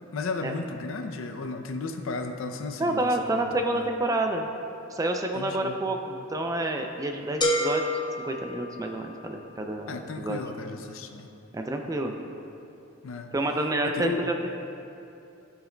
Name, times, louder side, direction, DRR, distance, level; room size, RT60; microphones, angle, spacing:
voice 1, 0.1-3.1 3.3-3.4 3.7-3.8 5.3-5.8 9.9-11.3 13.0-13.3 13.9-14.3, left 3 dB, 65° left, 6 dB, 0.5 m, -34 dB
voice 2, 2.8-4.5 4.9-7.8 8.2-10.4 11.5-12.1 13.3-14.5, right 1 dB, 15° right, 3 dB, 0.3 m, -28 dB
sound 1, 7.4-9.3, left 1 dB, 20° left, 0.6 m, -28 dB
13.5 x 4.7 x 2.2 m, 2.8 s
head